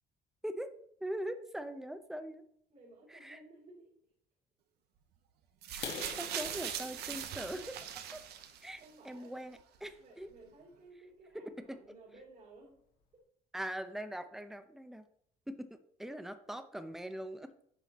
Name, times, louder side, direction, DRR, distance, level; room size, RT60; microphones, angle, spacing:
voice 1, 1.0-2.4 3.1-3.4 5.7-5.9 6.2-7.8 8.1-8.2 8.6-10.3 11.7-11.8 13.5-15.1 15.5-17.5, right 1 dB, ahead, 9 dB, 0.7 m, -42 dB
voice 2, 2.7-3.9 8.8-9.4 10.0-12.8, right 2 dB, 50° right, -5 dB, 3.1 m, -57 dB
sound 1, 5.6-8.9 9.8-9.9, right 9 dB, 75° right, 0.8 m, -41 dB
sound 2, 5.7-9.5 10.0-10.2 10.7-10.8 11.2-11.3 11.7-11.8 12.2-12.3 12.5-13.0, left 6 dB, 80° left, 1.7 m, -47 dB
9.2 x 5.7 x 3.0 m, 0.68 s
cardioid pair, 110°, 17 cm